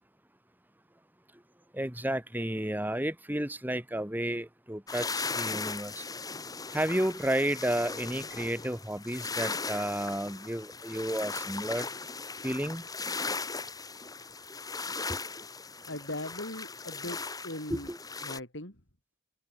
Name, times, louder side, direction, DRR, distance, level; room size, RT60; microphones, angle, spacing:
voice 1, 1.7-6.1 6.7-11.9 12.4-12.9 15.1-15.2 17.7-18.0, right 1 dB, 10° right, 2.5 m, -32 dB
sound 1, 4.9-18.4, left 4 dB, 20° left, 2.7 m, -38 dB
voice 2, 15.9-17.2 17.4-17.9 18.2-18.8, left 1 dB, 75° left, 6.0 m, -39 dB
head